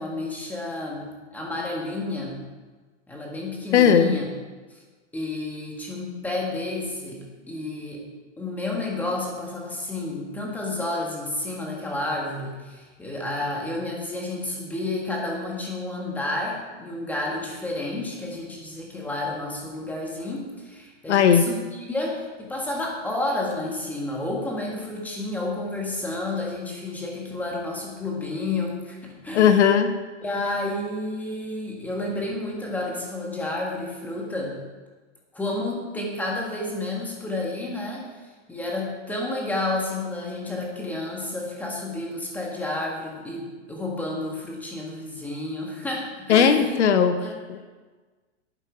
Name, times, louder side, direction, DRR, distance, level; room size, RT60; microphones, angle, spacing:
voice 1, 0.0-2.4 3.1-4.2 5.1-8.0 8.4-21.6 21.9-29.6 30.2-34.6 35.3-38.1 38.5-46.7 47.2-47.3, left 2 dB, 5° left, -2 dB, 1.7 m, -30 dB
voice 2, 3.7-4.1 21.1-21.4 29.3-29.9 46.3-47.2 47.5-47.7, left 8 dB, 70° left, 9 dB, 1.1 m, -17 dB
11.0 x 9.1 x 4.6 m, 1.3 s
hypercardioid pair, 155°, 36 cm